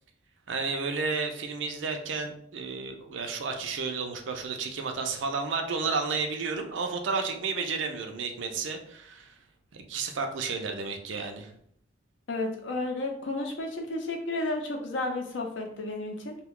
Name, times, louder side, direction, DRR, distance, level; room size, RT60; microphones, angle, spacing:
voice 1, 0.5-9.4 9.7-11.5, right 4 dB, 85° right, 5 dB, 0.5 m, -32 dB
voice 2, 12.3-16.4, left 2 dB, 80° left, 3 dB, 0.6 m, -32 dB
2.6 x 2.3 x 3.6 m, 0.68 s
head